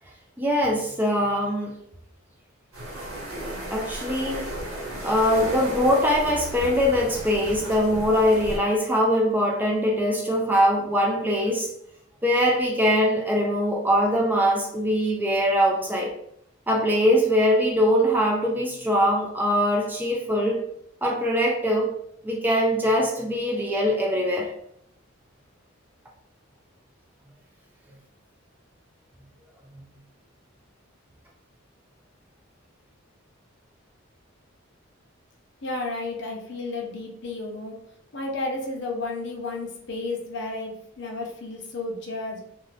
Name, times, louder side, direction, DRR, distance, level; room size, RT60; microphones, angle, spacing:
voice 1, 0.4-1.7 3.7-4.5 5.0-11.7 12.2-16.1 16.7-20.6 21.0-21.9 22.2-24.5, equal, 10° right, -1 dB, 0.3 m, -22 dB
sound 1, 2.7-8.6, right 1 dB, 75° right, 1.3 m, -34 dB
voice 2, 35.6-37.7 38.1-42.4, left 2 dB, 55° left, 0 dB, 0.6 m, -32 dB
2.6 x 2.5 x 3.1 m, 0.74 s
head